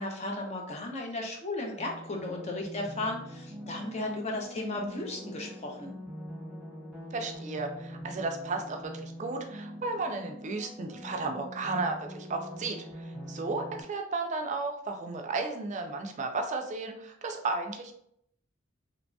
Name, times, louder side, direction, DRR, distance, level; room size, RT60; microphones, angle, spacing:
voice 1, 0.0-5.9, left 2 dB, 30° left, 1 dB, 0.5 m, -35 dB
sound 1, 1.8-13.8, equal, 5° right, 1.1 m, -43 dB
voice 2, 7.1-17.9, right 3 dB, 35° right, 4 dB, 0.4 m, -34 dB
2.9 x 2.7 x 2.2 m, 0.70 s
head